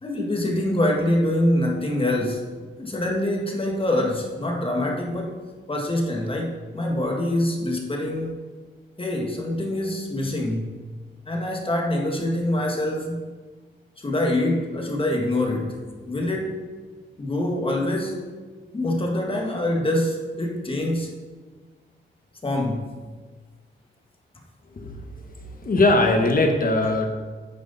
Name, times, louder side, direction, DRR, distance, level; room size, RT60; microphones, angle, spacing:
voice 1, 0.0-2.4 2.8-5.3 5.7-8.4 9.0-10.8 11.3-13.2 14.0-16.5 17.2-18.2 18.7-21.1 22.4-23.0, left 1 dB, 25° left, 0 dB, 1.8 m, -25 dB
voice 2, 24.7-27.1, left 2 dB, 45° left, 4 dB, 1.4 m, -21 dB
9.7 x 7.9 x 4.2 m, 1.4 s
cardioid pair, 95°, 20 cm